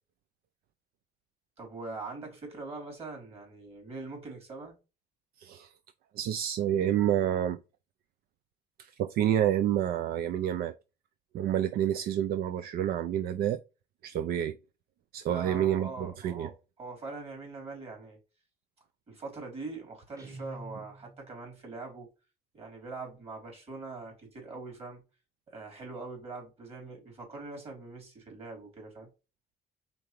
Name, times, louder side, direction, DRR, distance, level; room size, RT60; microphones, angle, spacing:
voice 1, 1.6-4.7 15.3-16.5 16.8-18.2 19.1-22.1 22.5-25.0 25.5-29.1, right 3 dB, 35° right, 3.0 m, -42 dB
voice 2, 5.4-5.7 6.1-7.6 8.8-10.7 11.3-13.6 14.0-14.6 15.1-16.5, right 10 dB, 65° right, 0.4 m, -28 dB
Guitar, 20.2-21.4, right 1 dB, 20° right, 1.2 m, -46 dB
4.5 x 3.8 x 3.0 m
cardioid pair, 110°, 17 cm